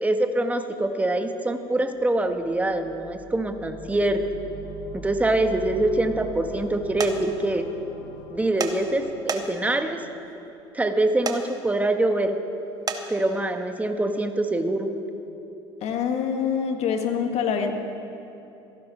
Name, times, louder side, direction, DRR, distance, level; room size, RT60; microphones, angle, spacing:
voice 1, 0.0-4.2 4.9-7.7 8.3-10.0 10.7-12.4 13.1-14.9, right 1 dB, 10° right, 6 dB, 1.3 m, -24 dB
sound 1, 1.9-10.8, right 1 dB, 70° left, 1.2 m, -43 dB
sound 2, 7.0-7.1 8.6-8.7 9.3-9.7 11.3-11.4 12.9-13.0, right 5 dB, 30° right, 1.3 m, -28 dB
voice 2, 15.8-17.7, left 7 dB, 55° left, 4 dB, 1.9 m, -25 dB
28.0 x 11.0 x 3.3 m, 2.8 s
hypercardioid pair, 70°, 14 cm